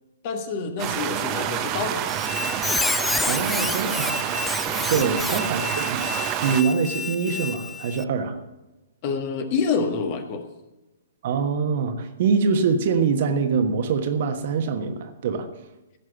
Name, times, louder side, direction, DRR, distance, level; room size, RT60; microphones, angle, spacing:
voice 1, 0.2-2.1 4.9-5.1 9.0-10.4, left 5 dB, 35° left, 6 dB, 1.6 m, -27 dB
sound 1, 0.8-6.6, right 11 dB, 25° right, 0.9 m, -28 dB
Squeak, 2.1-8.0, left 4 dB, 5° left, 0.3 m, -29 dB
voice 2, 3.3-4.5 4.8-6.1 6.4-8.4 11.2-15.5, right 5 dB, 45° right, 6 dB, 1.3 m, -24 dB
16.0 x 6.2 x 7.2 m, 1.0 s
figure-of-eight pair, 120°, 0 cm